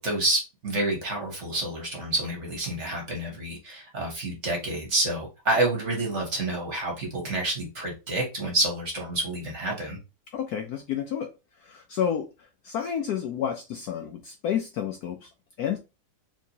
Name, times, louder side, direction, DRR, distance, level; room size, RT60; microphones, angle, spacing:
voice 1, 0.0-10.0, right 2 dB, 45° right, 1.1 m, -28 dB
voice 2, 10.3-11.3 11.6-15.3 15.6-15.8, left 8 dB, 70° left, 0.9 m, -30 dB
4.5 x 2.9 x 2.8 m
omnidirectional pair, 2.0 m